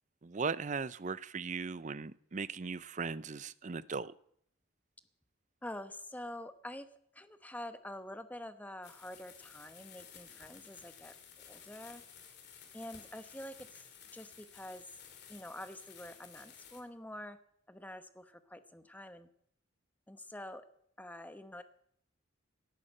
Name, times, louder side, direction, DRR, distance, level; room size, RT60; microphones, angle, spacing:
voice 1, 0.2-4.1, right 5 dB, 35° right, 17 dB, 0.5 m, -38 dB
voice 2, 5.6-6.9 7.1-11.1 11.5-12.0 12.7-13.8 14.1-14.8 15.3-17.4 17.7-19.3 20.1-20.6 21.0-21.6, left 1 dB, 10° left, 10 dB, 0.9 m, -46 dB
sound 1, 8.8-16.8, left 7 dB, 55° left, 2.7 m, -55 dB
17.5 x 11.0 x 6.5 m, 0.70 s
head